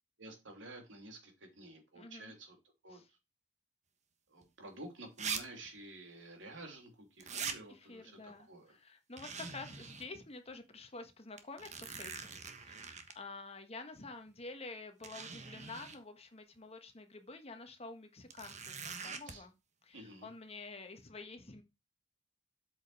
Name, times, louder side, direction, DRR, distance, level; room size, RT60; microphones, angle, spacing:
voice 1, 0.2-2.6 2.8-3.2 4.3-8.8 19.3-19.5 19.9-20.3, right 2 dB, 85° right, 4 dB, 2.9 m, -51 dB
voice 2, 1.9-2.3 2.9-3.1 7.7-19.5 19.8-21.6, left 3 dB, 30° left, 7 dB, 1.3 m, -49 dB
sound 1, 4.4-4.5 5.2-5.4 5.7-5.8 7.2-7.6 9.2-10.1 10.5-10.6 11.4-13.1 14.3-14.4 15.0-16.0 18.3-19.3, right 6 dB, 40° right, 1.2 m, -42 dB
8.1 x 5.1 x 4.7 m, 0.25 s
head